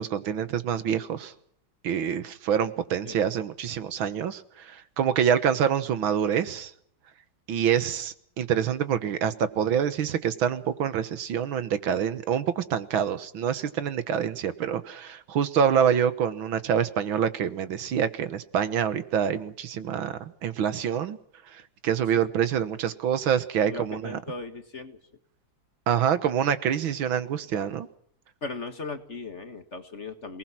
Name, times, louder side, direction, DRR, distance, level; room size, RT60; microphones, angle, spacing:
voice 1, 0.0-1.3 1.8-6.7 7.5-21.2 21.5-24.2 25.9-27.9, right 8 dB, 75° right, 13 dB, 2.0 m, -26 dB
voice 2, 23.6-25.0 28.4-30.4, left 3 dB, 35° left, 8 dB, 1.8 m, -37 dB
28.0 x 19.5 x 6.0 m, 0.66 s
omnidirectional pair, 2.3 m